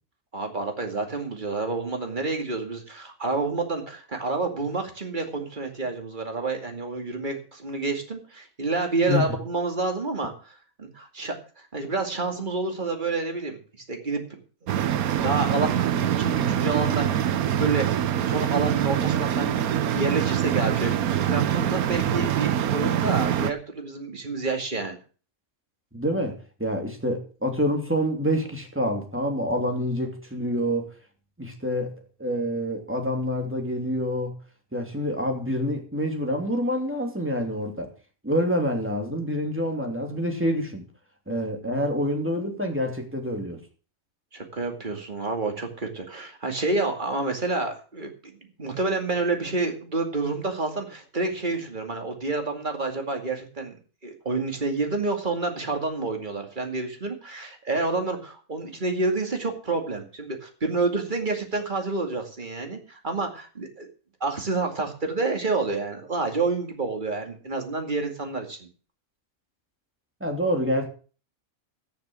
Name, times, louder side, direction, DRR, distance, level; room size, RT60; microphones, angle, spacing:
voice 1, 0.3-14.4 15.0-17.2 17.6-25.0 44.3-48.1 48.6-53.7 54.0-63.9 64.2-68.7, right 3 dB, 35° right, 2.5 m, -29 dB
sound 1, 14.7-23.5, right 10 dB, 90° right, 1.3 m, -24 dB
voice 2, 25.9-30.9 31.4-34.3 34.7-37.9 38.2-40.8 41.3-43.6 70.2-70.9, equal, 10° right, 2.8 m, -27 dB
14.0 x 7.0 x 6.4 m
omnidirectional pair, 1.5 m